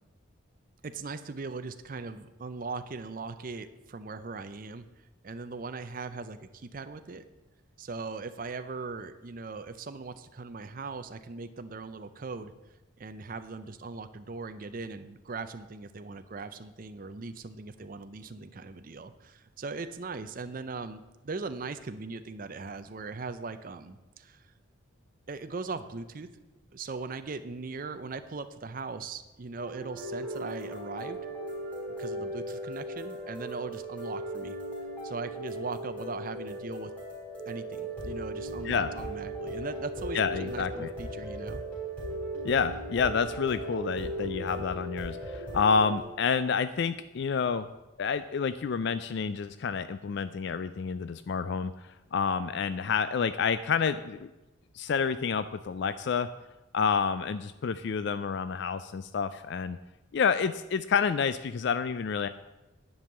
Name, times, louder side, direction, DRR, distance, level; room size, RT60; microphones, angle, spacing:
voice 1, 0.8-4.8 5.2-7.2 7.8-12.5 13.0-24.5 25.3-26.3 26.7-31.2 32.0-34.6 35.0-36.9 37.5-41.6, right 4 dB, 40° right, 9 dB, 0.5 m, -39 dB
sound 1, 29.6-46.0, right 1 dB, 5° left, 3.5 m, -37 dB
voice 2, 40.1-40.9 42.4-47.7 48.0-51.7 52.1-54.3 54.7-56.3 56.7-59.8 60.1-62.3, left 6 dB, 55° left, 12 dB, 0.4 m, -29 dB
10.5 x 5.4 x 8.0 m, 1.0 s
head